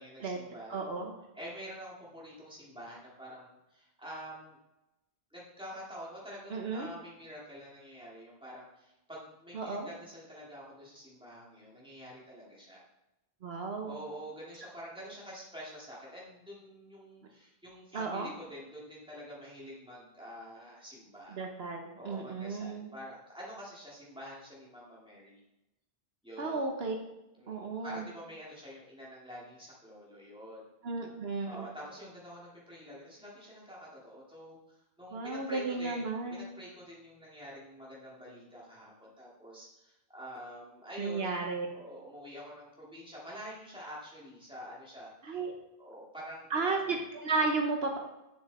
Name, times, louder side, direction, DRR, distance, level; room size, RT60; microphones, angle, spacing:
voice 1, 0.0-4.6 5.3-12.8 13.8-21.4 22.0-25.4 26.2-26.7 27.3-30.7 31.4-41.5 41.7-45.4 45.8-46.9, equal, 5° right, -7 dB, 2.7 m, -47 dB
voice 2, 0.7-1.1 6.5-6.9 9.5-9.9 13.4-14.0 17.9-18.3 21.3-22.9 26.4-26.9 27.5-28.0 30.8-31.7 35.1-36.5 41.0-41.7 45.2-45.5 46.5-48.0, right 3 dB, 70° right, 2 dB, 1.2 m, -33 dB
7.6 x 7.1 x 4.2 m, 0.94 s
omnidirectional pair, 1.1 m